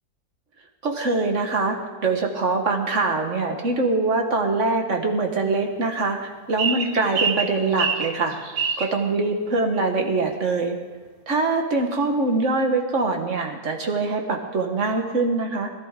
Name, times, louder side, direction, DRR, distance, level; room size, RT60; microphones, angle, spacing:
voice 1, 0.8-8.4 8.8-10.8 11.3-15.7, right 3 dB, 55° right, 3 dB, 1.7 m, -23 dB
sound 1, 6.6-8.9, right 5 dB, 90° right, 1.5 m, -25 dB
20.5 x 12.5 x 3.7 m, 1.4 s
omnidirectional pair, 1.6 m